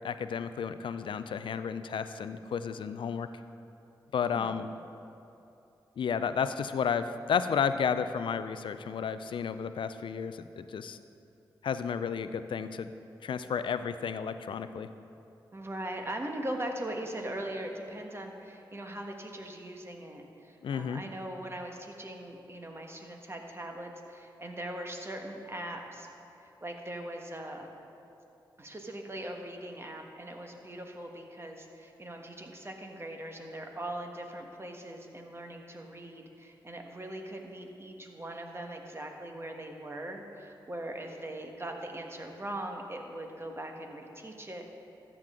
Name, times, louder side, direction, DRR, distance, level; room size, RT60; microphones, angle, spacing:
voice 1, 0.0-3.3 4.1-4.7 6.0-11.0 11.6-12.9 13.2-14.9 20.6-21.0, left 7 dB, 70° left, 11 dB, 0.4 m, -32 dB
voice 2, 15.5-26.1 26.4-27.7 28.6-44.6, right 1 dB, 30° right, 2 dB, 1.4 m, -40 dB
13.5 x 7.5 x 3.7 m, 2.8 s
cardioid pair, 45°, 9 cm